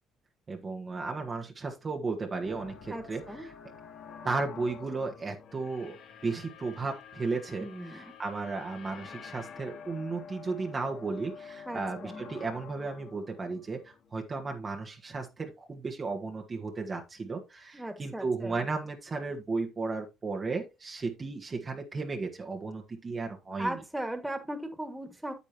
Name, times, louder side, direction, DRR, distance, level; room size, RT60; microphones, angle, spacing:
voice 1, 0.5-3.2 4.2-6.0 6.2-23.8, right 3 dB, 35° right, 1.6 m, -34 dB
sound 1, 2.4-14.6, left 6 dB, 65° left, 1.6 m, -48 dB
voice 2, 2.9-3.5 7.6-8.1 11.7-12.3 17.7-18.7 23.6-25.3, right 1 dB, 10° right, 2.0 m, -38 dB
8.5 x 8.2 x 3.0 m
hypercardioid pair, 60°, 0 cm